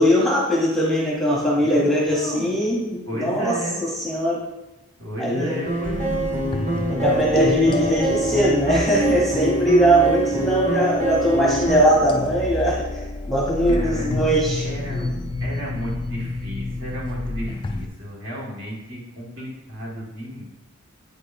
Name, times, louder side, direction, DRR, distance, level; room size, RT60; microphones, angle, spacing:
voice 1, 0.0-4.4 5.2-5.6 6.9-12.9 13.3-15.1, right 1 dB, ahead, -4 dB, 0.9 m, -20 dB
voice 2, 1.6-2.5 3.1-3.8 5.0-6.3 10.4-10.5 13.7-14.1 14.5-20.4, right 1 dB, 55° right, -4 dB, 1.7 m, -33 dB
sound 1, 5.5-11.8, right 2 dB, 30° right, 1.6 m, -26 dB
sound 2, 5.8-17.9, left 2 dB, 20° left, 0.3 m, -28 dB
8.2 x 4.8 x 2.6 m, 0.98 s
head